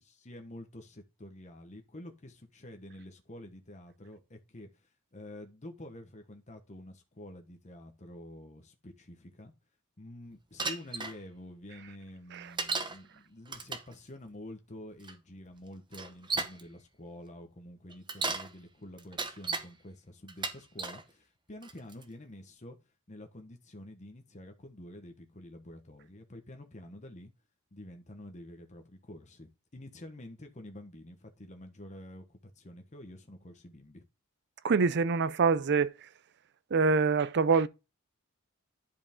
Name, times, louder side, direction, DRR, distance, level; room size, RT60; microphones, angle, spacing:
voice 1, 0.0-9.5 10.0-22.8 23.1-27.3 27.7-34.0, left 1 dB, 35° left, 1.1 m, -48 dB
Bicycle, 10.6-11.1 12.6-13.0 13.5-13.9 15.0-15.1 15.9-16.6 17.9-18.5 19.0-19.7 20.3-21.0 21.6-22.0, right 4 dB, 20° right, 0.9 m, -34 dB
voice 2, 34.6-35.9 36.7-37.7, right 5 dB, 55° right, 0.5 m, -25 dB
10.5 x 4.9 x 3.7 m
head